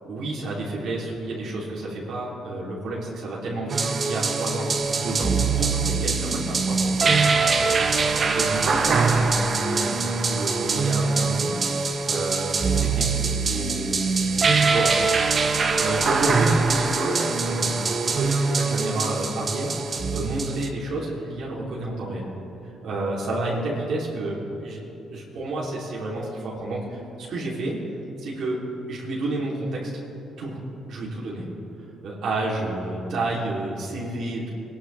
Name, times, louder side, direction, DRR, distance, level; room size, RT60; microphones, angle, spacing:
voice 1, 0.0-14.2 14.6-15.1 15.5-22.3 22.8-24.8 25.1-27.8 28.2-28.6 28.9-29.9 30.4-30.6 30.9-31.5 32.0-34.5, right 2 dB, 70° right, -5 dB, 3.3 m, -30 dB
sound 1, 3.7-20.7, right 4 dB, 45° right, 1.1 m, -23 dB
21.5 x 11.5 x 3.5 m, 2.9 s
supercardioid pair, 60°, 0 cm